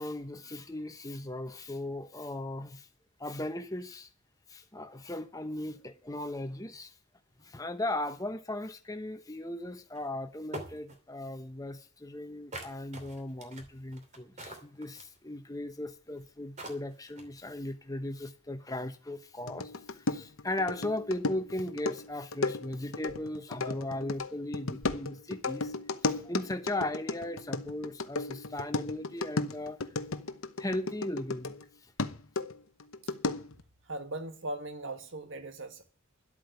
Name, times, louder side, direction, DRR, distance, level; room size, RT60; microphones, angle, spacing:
voice 1, 0.0-2.9 3.2-4.1 4.5-6.9 7.4-25.7 26.0-29.8 30.6-31.6 31.8-31.9, left 1 dB, 15° left, 1.1 m, -37 dB
sound 1, 10.0-10.1 10.5-11.0 12.5-15.2 16.2-16.3 16.6-17.4, right 1 dB, 35° right, 2.7 m, -43 dB
sound 2, 19.5-31.6 32.0-33.6, left 3 dB, 70° left, 0.9 m, -35 dB
voice 2, 33.9-35.8, right 2 dB, 60° right, 1.6 m, -39 dB
11.5 x 8.5 x 8.0 m
head